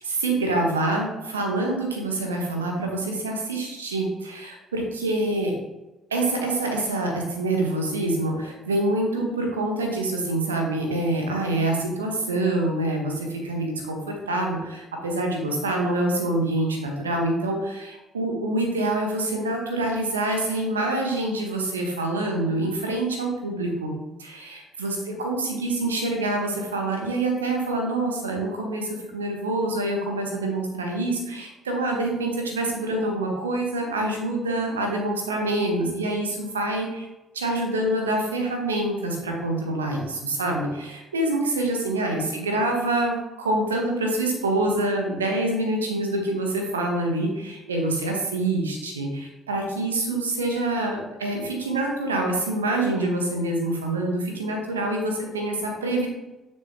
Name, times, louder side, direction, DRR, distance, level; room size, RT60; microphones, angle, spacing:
voice 1, 0.0-5.5 6.1-23.9 24.2-37.1 37.3-56.1, right 2 dB, 80° right, 2 dB, 1.1 m, -26 dB
6.9 x 6.5 x 2.8 m, 1.0 s
figure-of-eight pair, 45°, 0 cm